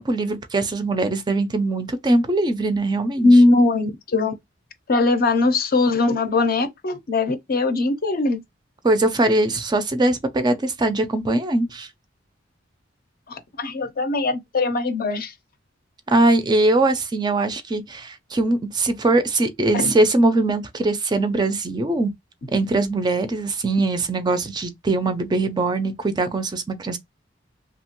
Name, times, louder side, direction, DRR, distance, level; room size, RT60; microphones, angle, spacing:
voice 1, 0.0-3.3 8.8-11.9 16.1-22.1 22.5-27.0, right 2 dB, 20° right, 0.4 m, -21 dB
voice 2, 3.2-4.3 4.9-8.4 13.3-15.3 19.7-19.9, left 2 dB, 50° left, 0.5 m, -20 dB
2.8 x 2.1 x 2.9 m
head